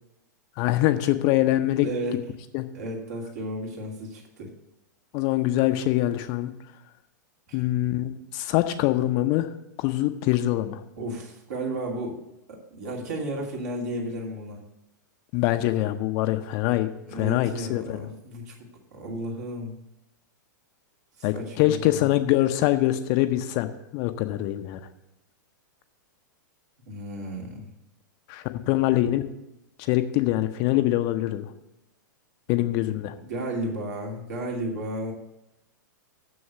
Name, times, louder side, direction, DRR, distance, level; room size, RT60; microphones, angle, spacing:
voice 1, 0.6-1.9 2.5-2.7 5.1-6.5 7.5-9.5 9.8-10.8 15.3-18.0 21.2-24.8 28.3-29.2 29.8-31.5 32.5-33.1, left 15 dB, 35° left, 9 dB, 0.7 m, -24 dB
voice 2, 1.8-2.2 2.7-4.5 7.5-7.6 11.0-12.2 12.5-14.6 17.1-18.5 18.9-19.8 21.2-22.1 26.9-27.7 32.5-32.7 33.3-35.1, right 1 dB, 55° right, -1 dB, 2.7 m, -33 dB
7.1 x 6.6 x 8.0 m, 0.89 s
figure-of-eight pair, 100°, 10 cm